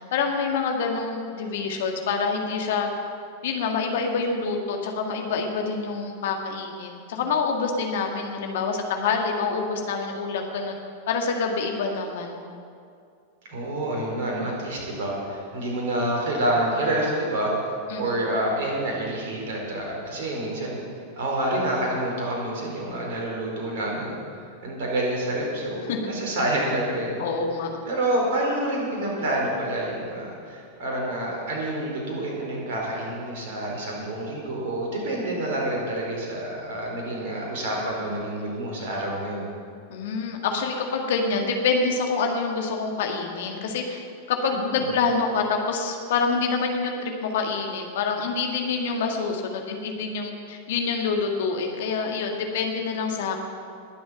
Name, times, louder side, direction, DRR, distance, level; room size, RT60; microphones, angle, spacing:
voice 1, 0.1-2.9 3.4-10.8 11.1-12.4 17.9-18.2 25.9-26.0 27.2-27.7 39.9-44.0 44.3-53.4, left 4 dB, 55° left, 2 dB, 2.0 m, -26 dB
voice 2, 13.5-20.8 21.2-24.2 24.6-27.2 27.8-39.4 44.5-44.9, right 1 dB, 55° right, -2 dB, 4.4 m, -28 dB
21.0 x 7.8 x 5.7 m, 2.4 s
figure-of-eight pair, 90°, 0 cm